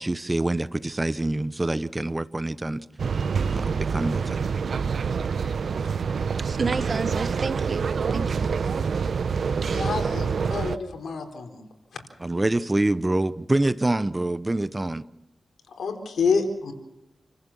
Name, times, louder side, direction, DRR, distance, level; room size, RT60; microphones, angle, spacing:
voice 1, 0.0-2.9 3.5-4.4 12.2-15.0, right 2 dB, 25° right, 16 dB, 0.9 m, -26 dB
sound 1, 3.0-10.8, right 5 dB, 75° right, 0.8 m, -26 dB
voice 2, 6.4-8.5, right 4 dB, 55° right, 13 dB, 1.2 m, -31 dB
voice 3, 9.7-11.6 15.7-16.7, left 5 dB, 85° left, 4 dB, 4.0 m, -27 dB
29.0 x 15.0 x 7.2 m, 0.92 s
cardioid pair, 65°, 0 cm